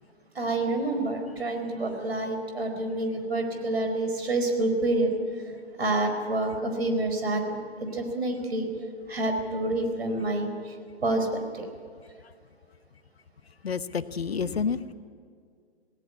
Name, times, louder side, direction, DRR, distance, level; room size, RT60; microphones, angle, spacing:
voice 1, 0.3-5.1 5.8-8.7 9.1-10.7 11.0-11.6, right 2 dB, 65° right, 5 dB, 4.5 m, -28 dB
voice 2, 13.6-14.9, left 6 dB, 65° left, 14 dB, 1.0 m, -29 dB
18.0 x 18.0 x 9.5 m, 2.1 s
figure-of-eight pair, 130°, 33 cm